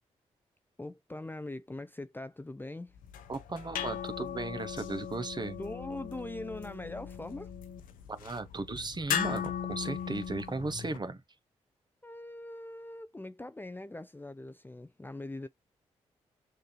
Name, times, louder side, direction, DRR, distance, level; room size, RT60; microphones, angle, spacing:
voice 1, 0.8-2.9 5.6-7.5 12.0-15.5, left 2 dB, 15° left, 0.5 m, -42 dB
sound 1, 2.9-11.0, left 8 dB, 80° left, 0.6 m, -38 dB
voice 2, 3.3-5.6 8.1-11.2, right 3 dB, 30° right, 0.8 m, -36 dB
6.5 x 2.6 x 3.0 m
supercardioid pair, 40°, 14 cm